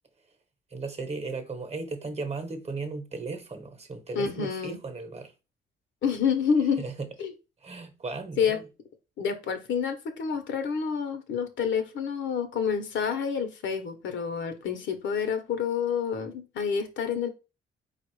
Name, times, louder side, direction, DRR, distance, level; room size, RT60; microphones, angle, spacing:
voice 1, 0.7-5.3 6.8-7.1 7.6-8.6, right 3 dB, 30° right, 1.0 m, -36 dB
voice 2, 4.1-4.8 6.0-6.8 7.2-7.3 8.4-8.6 9.2-17.3, left 6 dB, 70° left, 0.9 m, -28 dB
4.1 x 2.4 x 4.7 m
cardioid pair, 90°, 20 cm